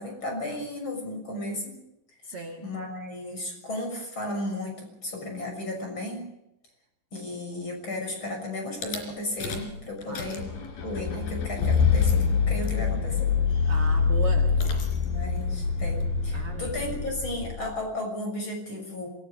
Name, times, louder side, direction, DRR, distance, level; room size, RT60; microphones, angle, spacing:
voice 1, 0.0-1.8 2.6-6.3 7.1-10.5 10.8-13.9 15.0-19.1, left 1 dB, 25° left, 3 dB, 7.0 m, -34 dB
voice 2, 2.2-2.6 10.1-10.3 13.7-14.5 16.3-16.9, right 4 dB, 55° right, 4 dB, 1.6 m, -37 dB
Rattle / Car / Engine starting, 8.8-9.0 9.4-9.7 10.0-17.8, left 5 dB, 55° left, 4.9 m, -25 dB
26.5 x 18.5 x 6.5 m, 0.83 s
omnidirectional pair, 5.4 m